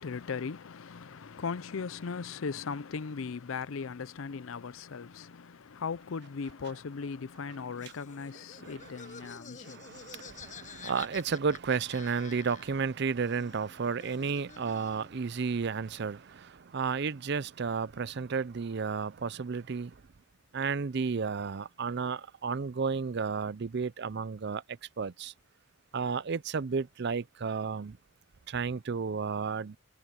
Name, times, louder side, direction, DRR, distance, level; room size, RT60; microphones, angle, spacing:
voice 1, 0.0-10.0, left 5 dB, 75° left, 0.5 m, -38 dB
Laughter, 7.8-12.9 13.2-15.2, left 6 dB, 40° left, 7.6 m, -49 dB
voice 2, 8.6-20.0 20.5-24.6 25.0-25.3 25.9-28.0 28.5-29.8, right 5 dB, 55° right, 0.5 m, -32 dB
head